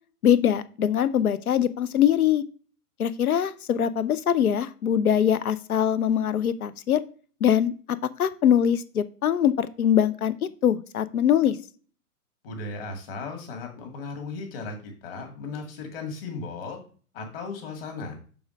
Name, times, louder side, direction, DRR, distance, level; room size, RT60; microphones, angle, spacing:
voice 1, 0.2-2.4 3.0-7.0 7.4-10.3 10.6-11.6, left 9 dB, 65° left, 15 dB, 0.7 m, -22 dB
voice 2, 12.4-16.8 17.1-18.2, left 3 dB, 35° left, 4 dB, 2.0 m, -36 dB
7.0 x 3.6 x 5.2 m, 0.41 s
figure-of-eight pair, 120°, 47 cm